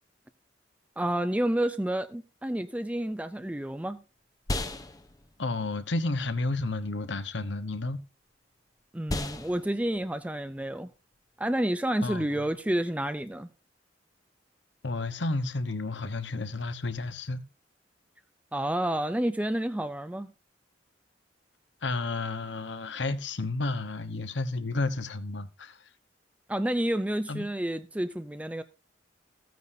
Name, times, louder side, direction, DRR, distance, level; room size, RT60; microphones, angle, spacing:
voice 1, 1.0-4.0 8.9-10.9 11.4-13.5 18.5-20.3 26.5-28.6, right 1 dB, 5° right, 0.4 m, -29 dB
sound 1, 3.1-12.7, left 2 dB, 20° left, 0.7 m, -40 dB
voice 2, 5.4-8.0 12.0-12.3 14.8-17.4 21.8-25.8 27.3-27.4, left 2 dB, 80° left, 1.1 m, -31 dB
15.5 x 9.3 x 2.7 m
head